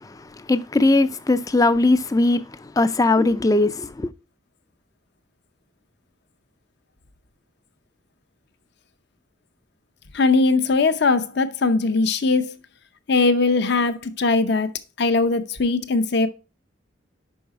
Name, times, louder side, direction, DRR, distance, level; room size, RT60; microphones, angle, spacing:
voice 1, 0.5-2.4 2.8-4.1, left 2 dB, 15° left, 0.4 m, -19 dB
voice 2, 10.1-12.5 13.1-14.7 15.0-16.3, left 3 dB, 55° left, 0.6 m, -20 dB
5.5 x 5.4 x 4.6 m
head